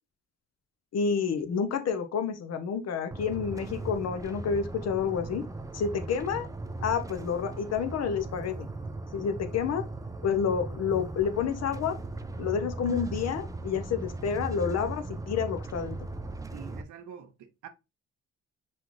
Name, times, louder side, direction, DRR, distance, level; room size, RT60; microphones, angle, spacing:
voice 1, 0.9-5.4 5.7-6.5 6.8-8.7 9.1-9.9 10.2-12.0 12.4-16.1, left 6 dB, 60° left, 0.9 m, -29 dB
sound 1, 3.1-16.8, right 2 dB, 10° right, 0.4 m, -38 dB
voice 2, 16.5-17.7, right 7 dB, 80° right, 0.8 m, -45 dB
5.6 x 2.6 x 3.1 m
cardioid pair, 90°, 30 cm